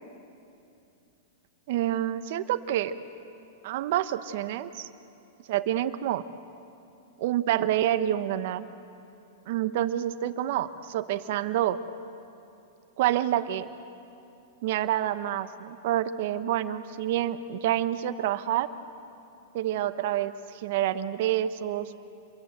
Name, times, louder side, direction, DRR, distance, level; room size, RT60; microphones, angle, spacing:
voice 1, 1.7-2.9 3.6-4.9 5.5-6.2 7.2-8.7 9.5-11.8 13.0-13.7 14.6-18.7 19.5-21.9, right 12 dB, 60° right, 10 dB, 1.1 m, -28 dB
27.5 x 22.5 x 8.0 m, 2.7 s
hypercardioid pair, 120°, 0 cm